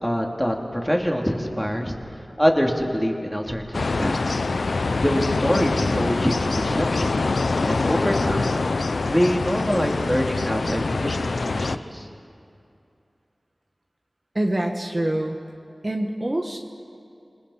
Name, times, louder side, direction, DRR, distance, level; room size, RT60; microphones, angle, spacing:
voice 1, 0.0-2.0 2.4-4.4 5.0-7.1 7.6-8.6 9.0-12.1, equal, 5° left, 1 dB, 2.8 m, -25 dB
sound 1, 3.7-11.8, left 3 dB, 85° left, 0.6 m, -24 dB
voice 2, 14.3-15.4 15.8-16.6, right 1 dB, 40° right, 2 dB, 1.4 m, -25 dB
27.5 x 19.5 x 5.7 m, 2.6 s
wide cardioid pair, 45°, 0 cm